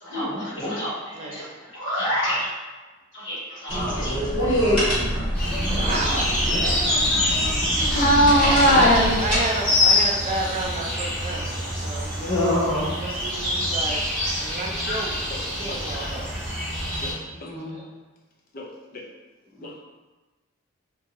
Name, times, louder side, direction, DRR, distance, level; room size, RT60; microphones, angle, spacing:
voice 1, 0.0-2.5 3.1-4.9 7.8-8.2 12.2-12.9 17.3-17.8 19.5-19.7, left 1 dB, 70° left, -10 dB, 1.0 m, -26 dB
sound 1, 3.7-9.4, equal, 25° left, 1.2 m, -26 dB
sound 2, 5.3-17.1, left 1 dB, 5° left, 0.9 m, -26 dB
voice 2, 5.8-6.4 8.6-12.4 13.0-14.1 14.4-15.2 15.6-16.3 17.7-17.8, right 2 dB, 35° right, 0 dB, 0.4 m, -30 dB
voice 3, 8.0-9.2 14.9-15.0 15.3-15.4 15.9-16.3 17.0-17.2 18.5-19.0 19.6-19.8, equal, 45° left, -1 dB, 0.4 m, -21 dB
2.7 x 2.2 x 2.9 m, 1.2 s
head